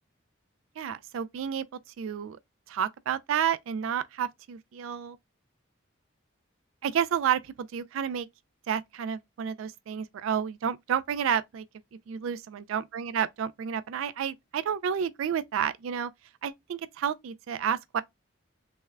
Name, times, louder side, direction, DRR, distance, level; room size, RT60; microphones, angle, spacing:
voice 1, 0.8-1.7 2.0-2.4 2.7-5.2 6.8-8.3 8.7-11.6 12.1-16.1 16.4-18.0, right 8 dB, 75° right, 0.3 m, -30 dB
3.5 x 2.1 x 3.2 m
head